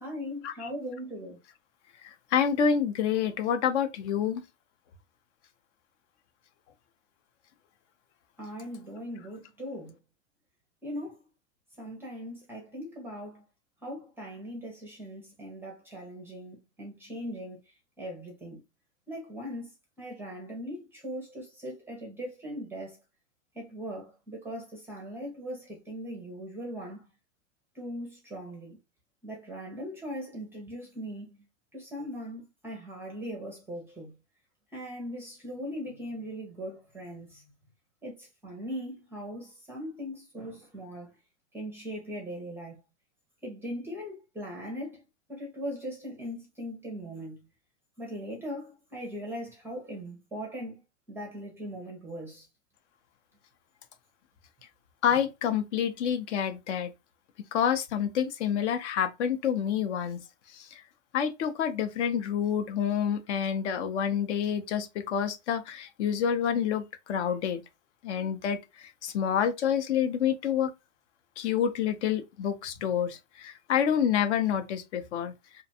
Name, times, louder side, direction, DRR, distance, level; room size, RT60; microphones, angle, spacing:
voice 1, 0.0-1.4 8.4-10.0 10.8-11.3 11.8-13.4 13.8-17.6 18.0-18.6 19.1-19.7 20.0-23.0 23.5-27.0 27.7-28.8 29.2-31.4 31.7-34.1 34.7-37.4 38.0-41.1 41.5-42.8 43.4-45.0 45.3-47.4 48.0-50.8 51.1-52.5, equal, 5° right, 0.4 m, -39 dB
voice 2, 2.0-4.4 55.0-56.9 57.5-60.2 60.5-60.8 61.1-67.6 68.0-70.7 71.4-75.3, left 8 dB, 70° left, 0.6 m, -28 dB
2.5 x 2.2 x 2.7 m
supercardioid pair, 145°, 36 cm